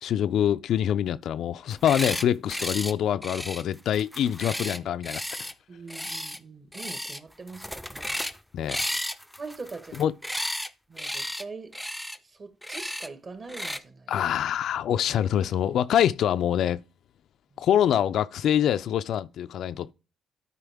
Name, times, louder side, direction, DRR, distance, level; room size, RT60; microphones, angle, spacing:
voice 1, 0.0-5.2 8.5-8.8 10.0-10.1 14.1-16.8 17.6-19.9, left 10 dB, 75° left, 0.3 m, -25 dB
sound 1, 1.7-2.2 2.5-2.9 3.2-5.5 5.9-6.4 6.7-7.2 7.5-8.4 8.7-10.7 11.0-11.4 11.7-12.2 12.6-13.1 13.5-13.8, equal, ahead, 0.4 m, -33 dB
voice 2, 5.7-8.2 9.4-10.1 10.9-11.7 12.2-14.1 17.5-17.7, right 4 dB, 40° right, 1.4 m, -42 dB
12.0 x 4.5 x 3.5 m
cardioid pair, 90°, 0 cm